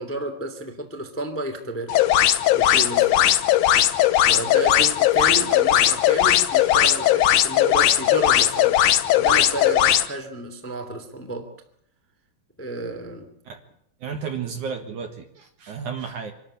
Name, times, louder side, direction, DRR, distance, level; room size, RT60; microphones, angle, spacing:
voice 1, 0.0-2.0 2.5-3.3 4.3-8.8 9.2-11.5 12.6-13.3, right 2 dB, 5° left, 5 dB, 1.8 m, -31 dB
sound 1, 1.9-10.1, left 12 dB, 75° left, 1.9 m, -18 dB
voice 2, 14.0-16.3, right 6 dB, 55° right, 5 dB, 2.7 m, -32 dB
26.0 x 13.0 x 8.9 m, 0.73 s
omnidirectional pair, 4.7 m